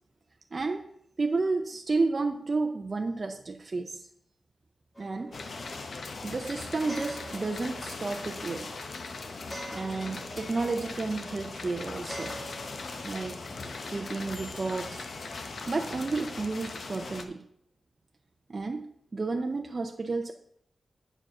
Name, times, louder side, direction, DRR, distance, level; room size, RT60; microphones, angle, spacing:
voice 1, 0.5-0.9 1.2-4.1 5.0-5.4 6.2-8.7 9.7-12.4 13.0-13.5 13.9-15.1 15.7-17.4 18.5-18.8 19.1-20.3, right 3 dB, 35° right, 4 dB, 0.5 m, -31 dB
sound 1, 4.9-16.2, right 1 dB, 10° left, 1.4 m, -48 dB
sound 2, 5.3-17.2, left 3 dB, 60° left, 0.8 m, -40 dB
7.7 x 4.8 x 6.0 m, 0.70 s
wide cardioid pair, 140°, 0 cm